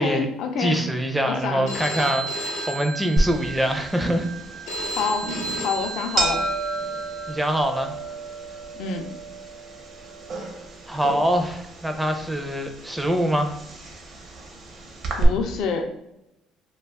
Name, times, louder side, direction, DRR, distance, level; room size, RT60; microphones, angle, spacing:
voice 1, 0.0-0.8 1.2-1.7 5.0-5.3 5.6-6.4 8.7-9.1 15.2-15.9, left 5 dB, 65° left, 4 dB, 0.4 m, -27 dB
voice 2, 0.6-4.3 7.3-7.9 10.9-13.5, right 1 dB, 5° right, 5 dB, 0.4 m, -24 dB
Telephone, 1.7-7.6, right 2 dB, 85° left, 0.7 m, -33 dB
sound 1, 3.2-15.2, right 2 dB, 50° right, 0.7 m, -31 dB
2.3 x 2.2 x 3.4 m, 0.85 s
cardioid pair, 115°, 0 cm